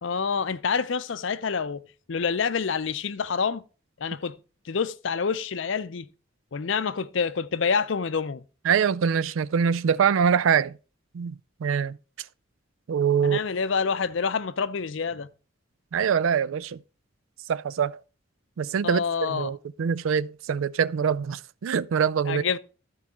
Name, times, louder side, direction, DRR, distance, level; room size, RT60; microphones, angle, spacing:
voice 1, 0.0-1.8 2.1-3.6 4.0-4.4 4.7-6.1 6.5-8.4 13.2-15.3 18.8-19.5 22.3-22.6, left 5 dB, 70° left, 0.5 m, -27 dB
voice 2, 8.6-10.8 11.1-12.0 12.9-13.4 15.9-16.8 17.5-18.0 18.6-22.4, right 7 dB, 85° right, 0.4 m, -24 dB
14.0 x 4.7 x 4.2 m
head